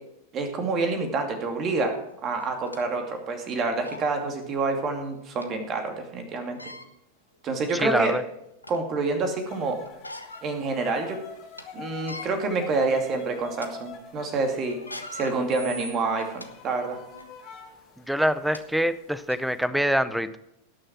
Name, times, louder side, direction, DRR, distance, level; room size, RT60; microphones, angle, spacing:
voice 1, 0.3-1.9 2.2-6.6 7.4-8.2 8.7-9.8 10.4-11.2 11.7-14.8 15.1-17.0, right 3 dB, 30° right, 4 dB, 2.5 m, -27 dB
sound 1, 1.7-1.8 2.4-2.9 3.4-3.5 3.8-4.1 5.4-5.5 6.4-6.9 7.6-7.7 8.2-8.9 9.8-10.5 10.9-11.0 11.4-11.6 12.0-12.3 12.9-13.1 13.5-13.7 14.7-16.5 17.1-17.3 18.1-18.2 18.5-18.6 19.3-19.4, left 1 dB, 85° left, 1.1 m, -41 dB
voice 2, 7.8-8.2 18.1-20.4, equal, ahead, 15 dB, 0.7 m, -25 dB
sound 2, 9.5-18.8 19.1-19.6, left 6 dB, 35° left, 2.8 m, -47 dB
18.0 x 6.6 x 6.0 m, 0.84 s
figure-of-eight pair, 90°, 0 cm